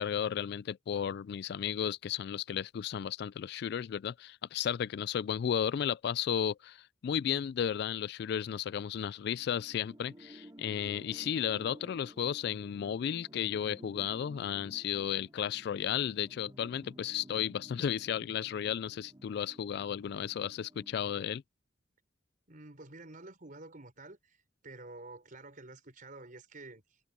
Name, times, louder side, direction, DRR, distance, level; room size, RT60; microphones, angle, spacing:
voice 1, 0.0-21.4, left 8 dB, 55° left, 0.3 m, -34 dB
sound 1, 9.4-21.4, equal, 20° right, 3.9 m, -54 dB
voice 2, 22.5-24.4 24.6-27.0, right 2 dB, 45° right, 4.6 m, -49 dB
head